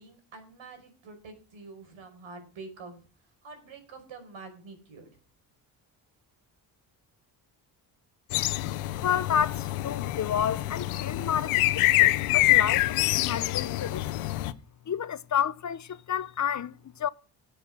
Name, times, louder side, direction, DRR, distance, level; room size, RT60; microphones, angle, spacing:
voice 1, 0.0-3.1 3.4-5.1, right 3 dB, 70° right, 5.3 m, -46 dB
sound 1, 8.3-14.5, left 17 dB, 80° left, 0.9 m, -26 dB
voice 2, 9.0-14.3 14.9-17.1, left 9 dB, 35° left, 0.8 m, -30 dB
13.5 x 7.9 x 6.2 m
supercardioid pair, 60°, 49 cm